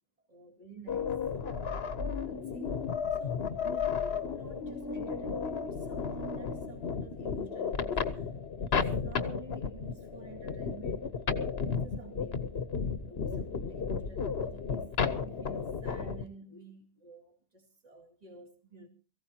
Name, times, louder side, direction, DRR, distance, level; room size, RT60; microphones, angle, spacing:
voice 1, 0.3-1.2 2.2-2.8 3.1-12.5 13.1-18.9, right 3 dB, 35° right, 2.5 m, -51 dB
sound 1, 0.9-16.2, left 6 dB, 65° left, 1.2 m, -33 dB
23.0 x 15.5 x 2.9 m
omnidirectional pair, 1.1 m